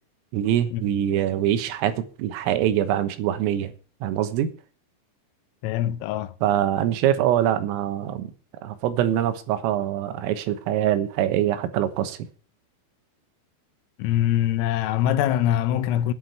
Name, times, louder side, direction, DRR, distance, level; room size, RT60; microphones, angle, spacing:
voice 1, 0.3-3.7 4.0-4.5 6.4-8.3 8.6-12.3, right 11 dB, 85° right, 3.8 m, -24 dB
voice 2, 5.6-6.3 14.0-16.1, left 11 dB, 90° left, 3.6 m, -23 dB
10.0 x 7.9 x 8.7 m
omnidirectional pair, 5.8 m